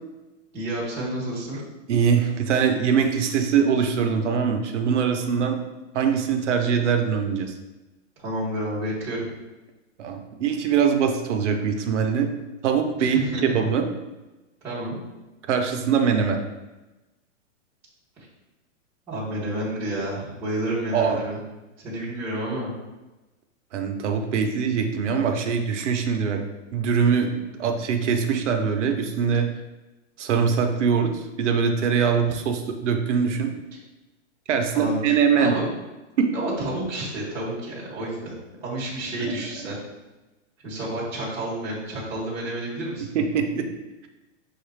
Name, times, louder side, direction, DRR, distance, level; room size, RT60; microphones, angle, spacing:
voice 1, 0.5-1.6 8.2-9.2 13.0-13.5 14.6-15.0 19.1-21.4 21.8-22.7 34.7-35.0 35.4-35.6 36.3-38.3 38.6-39.8 40.6-43.1, right 1 dB, 5° right, -10 dB, 0.6 m, -30 dB
voice 2, 1.9-5.6 5.9-7.5 10.0-12.3 12.6-13.8 15.5-16.4 20.9-21.2 23.7-26.4 26.7-29.5 30.2-33.5 34.5-35.6 36.2-36.3 39.2-39.7 43.1-43.7, right 6 dB, 65° right, 4 dB, 0.7 m, -23 dB
6.4 x 2.4 x 3.2 m, 1.1 s
supercardioid pair, 175°, 38 cm